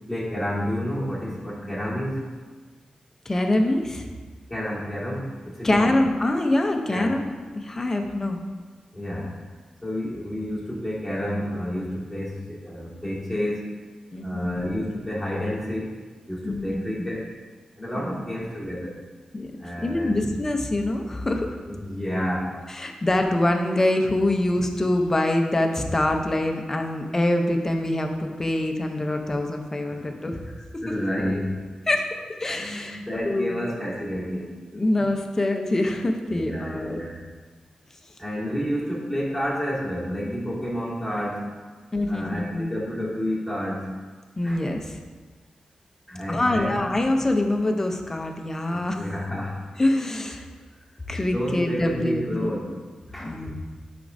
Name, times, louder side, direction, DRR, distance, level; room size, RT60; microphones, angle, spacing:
voice 1, 0.1-2.3 4.5-6.0 6.8-7.2 8.9-9.4 9.8-13.8 14.2-15.9 16.3-17.3 17.8-19.0 19.6-20.3 21.6-22.6 29.9-30.1 30.6-31.6 32.2-32.3 32.5-34.5 36.3-37.2 38.2-41.6 42.1-44.0 44.4-44.7 46.1-46.8 48.7-49.6 51.2-52.7 53.1-53.4, equal, ahead, -7 dB, 1.8 m, -30 dB
voice 2, 3.3-4.1 5.6-8.4 12.7-12.8 14.1-14.5 16.4-16.9 17.9-18.2 19.3-19.5 19.8-21.6 22.7-30.4 31.9-32.1 32.4-33.6 34.7-37.0 41.9-42.7 44.4-45.0 46.3-49.1 49.8-50.5 51.1-52.5 53.2-53.5, left 1 dB, 20° left, 3 dB, 0.6 m, -25 dB
10.0 x 5.1 x 2.6 m, 1.4 s
wide cardioid pair, 155°, 2 cm